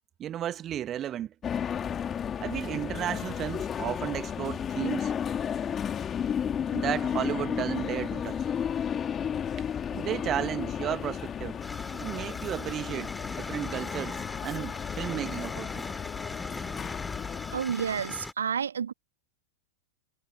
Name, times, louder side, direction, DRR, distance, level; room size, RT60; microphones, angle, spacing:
voice 1, 0.2-1.3 2.4-5.1 6.7-8.5 9.9-11.6 12.0-15.9, right 11 dB, 30° right, 1.7 m, -33 dB
sound 1, 1.4-17.6, left 8 dB, 25° left, 2.4 m, -33 dB
sound 2, 11.6-18.3, left 2 dB, 5° left, 6.6 m, -40 dB
voice 2, 17.5-18.9, right 7 dB, 70° right, 1.8 m, -30 dB
figure-of-eight pair, 90°, 0 cm